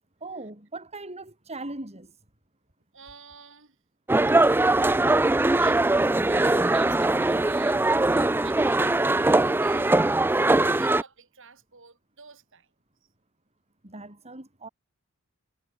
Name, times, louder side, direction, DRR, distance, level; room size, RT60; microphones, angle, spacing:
voice 1, 0.2-2.1 13.8-14.7, right 2 dB, 30° right, 4.8 m, -39 dB
voice 2, 2.9-3.8 5.6-12.7, right 6 dB, 60° right, 7.4 m, -48 dB
sound 1, 4.1-11.0, right 2 dB, 10° right, 0.4 m, -21 dB
head